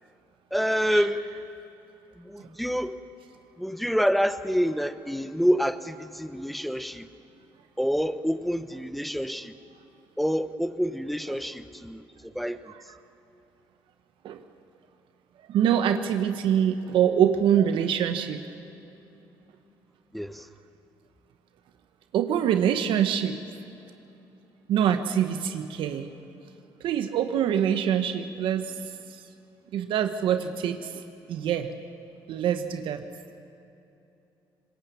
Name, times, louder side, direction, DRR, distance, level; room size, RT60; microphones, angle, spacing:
voice 1, 0.5-1.2 2.2-3.0 3.6-7.1 7.8-9.5 10.2-12.6 20.1-20.4, equal, ahead, 11 dB, 1.1 m, -27 dB
voice 2, 15.5-18.4 22.1-23.4 24.7-26.1 26.8-28.7 29.7-31.0 31.3-31.7 32.3-33.0, right 9 dB, 70° right, 8 dB, 1.2 m, -24 dB
25.0 x 20.5 x 7.0 m, 2.8 s
supercardioid pair, 80°, 9 cm